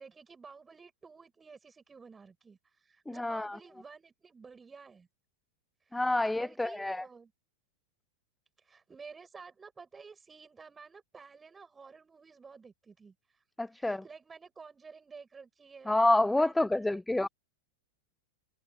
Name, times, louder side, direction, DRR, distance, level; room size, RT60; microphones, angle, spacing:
voice 1, 0.0-2.6 2.8-5.1 5.9-7.3 8.6-13.1 13.7-15.9 16.4-17.3, right 5 dB, 15° right, 6.5 m, -52 dB
voice 2, 3.2-3.6 5.9-7.0 13.6-14.0 15.9-17.3, left 2 dB, 5° left, 0.6 m, -28 dB
figure-of-eight pair, 90°, 0 cm